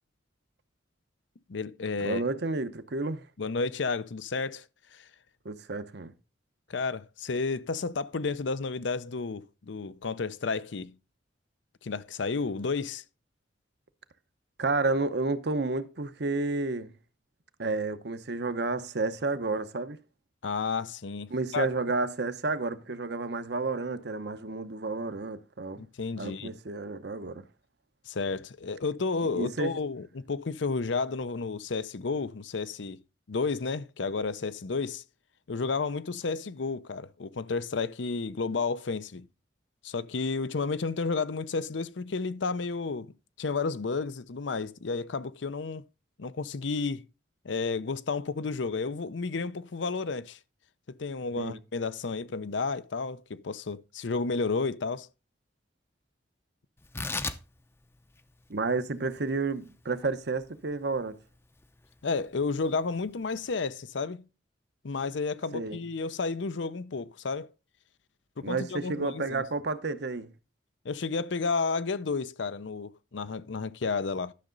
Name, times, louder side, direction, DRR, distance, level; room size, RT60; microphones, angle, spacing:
voice 1, 1.5-2.2 3.4-4.7 4.9-5.1 6.7-11.0 11.8-13.0 20.4-21.7 25.8-26.6 28.1-33.0 33.3-35.0 35.5-39.3 39.8-43.1 43.4-45.8 46.2-47.0 47.4-50.4 51.0-55.1 62.0-64.3 64.8-67.5 68.4-69.4 70.8-74.3, left 4 dB, 75° left, 0.6 m, -32 dB
voice 2, 2.0-3.2 5.4-6.1 14.6-16.9 17.6-20.0 21.3-25.8 26.2-27.4 29.3-29.8 51.4-51.6 58.5-61.2 65.5-65.8 68.4-70.3, right 3 dB, 60° right, 0.8 m, -31 dB
Tearing, 56.8-63.5, left 3 dB, 15° left, 0.6 m, -41 dB
12.0 x 6.6 x 3.9 m
head